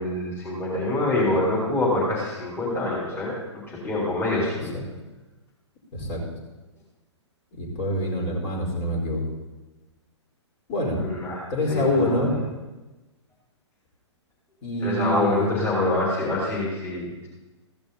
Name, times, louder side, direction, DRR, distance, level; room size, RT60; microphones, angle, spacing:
voice 1, 0.0-3.3 3.7-4.7 11.0-12.2 14.8-17.3, left 2 dB, 15° left, -8 dB, 4.0 m, -26 dB
voice 2, 7.5-9.2 10.7-11.1 11.5-12.4 14.6-15.6, left 1 dB, 35° left, -2 dB, 4.7 m, -26 dB
15.5 x 11.0 x 4.1 m, 1.1 s
figure-of-eight pair, 115°, 15 cm